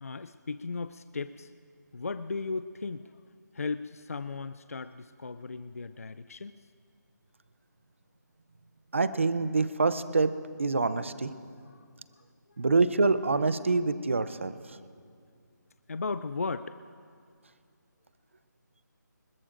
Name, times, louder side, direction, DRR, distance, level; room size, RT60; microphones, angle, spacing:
voice 1, 0.0-1.5 1.9-3.2 3.5-6.6 11.6-11.8 15.9-16.8, left 4 dB, 50° left, 13 dB, 0.4 m, -36 dB
voice 2, 8.9-10.3 10.6-11.3 12.6-14.5, right 3 dB, 40° right, 13 dB, 0.6 m, -26 dB
25.0 x 21.0 x 2.6 m, 2.2 s
hypercardioid pair, 180°, 10 cm